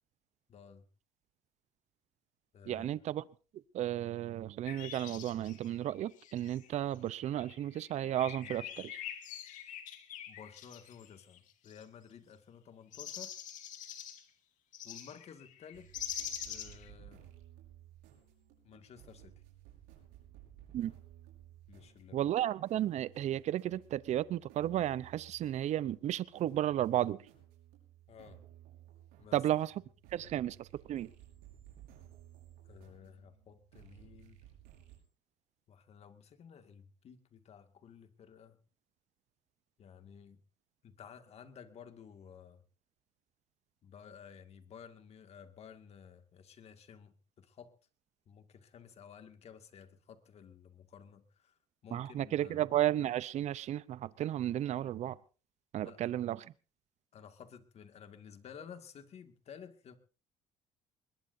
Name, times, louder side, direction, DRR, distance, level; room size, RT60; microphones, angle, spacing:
voice 1, 0.5-0.9 2.5-3.0 10.3-13.4 14.8-15.9 16.5-17.2 18.6-19.3 21.7-22.3 28.1-28.4 29.2-29.4 30.2-30.5 32.7-34.4 35.7-38.6 39.8-40.4 40.8-42.6 43.8-47.7 48.3-52.7 55.8-56.1 57.1-60.0, left 7 dB, 50° left, 8 dB, 2.1 m, -54 dB
voice 2, 2.7-3.2 3.7-9.0 20.7-20.9 22.1-27.2 29.3-29.7 30.1-31.1 51.9-55.2 55.7-56.5, right 12 dB, 55° right, 18 dB, 0.7 m, -33 dB
sound 1, 4.7-6.7 7.2-11.8 12.9-14.2 14.7-16.9, left 10 dB, 65° left, 2.2 m, -45 dB
sound 2, 15.7-35.0, right 12 dB, 85° right, 5.8 m, -57 dB
21.5 x 20.5 x 2.7 m, 0.35 s
cardioid pair, 95°, 14 cm